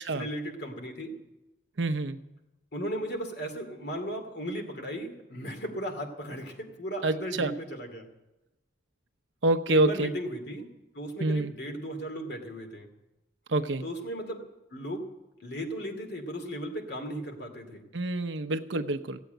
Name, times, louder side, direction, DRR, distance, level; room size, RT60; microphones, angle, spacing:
voice 1, 0.1-1.2 2.7-8.1 9.7-10.6 10.9-12.9 13.8-14.5 14.7-15.1 15.4-17.8, equal, 60° left, 4 dB, 2.6 m, -36 dB
voice 2, 1.8-2.2 7.0-7.5 9.4-10.1 11.2-11.5 13.5-13.8 17.9-19.2, right 2 dB, 80° right, 9 dB, 0.9 m, -27 dB
16.0 x 8.2 x 9.1 m, 0.98 s
head